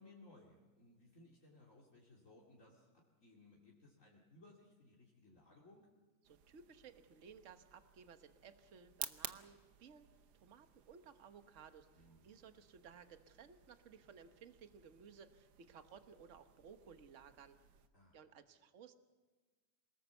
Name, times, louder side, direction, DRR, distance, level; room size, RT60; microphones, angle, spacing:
voice 1, 0.0-5.9 11.9-12.3 17.9-18.3, left 2 dB, 50° left, -2 dB, 3.1 m, -63 dB
voice 2, 6.2-17.6 18.1-18.9, right 6 dB, 50° right, 9 dB, 1.4 m, -59 dB
sound 1, 6.2-17.9, right 9 dB, 85° right, 1.5 m, -55 dB
27.0 x 18.5 x 7.2 m, 1.3 s
omnidirectional pair, 1.7 m